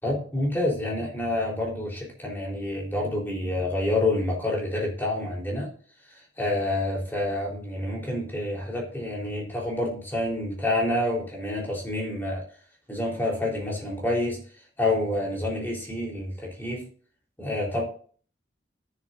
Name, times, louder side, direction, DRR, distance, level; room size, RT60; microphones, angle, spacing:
voice 1, 0.0-5.7 6.4-12.4 12.9-14.4 14.8-16.8 17.4-17.8, left 1 dB, 10° left, -2 dB, 3.6 m, -28 dB
13.0 x 7.5 x 2.5 m, 0.44 s
head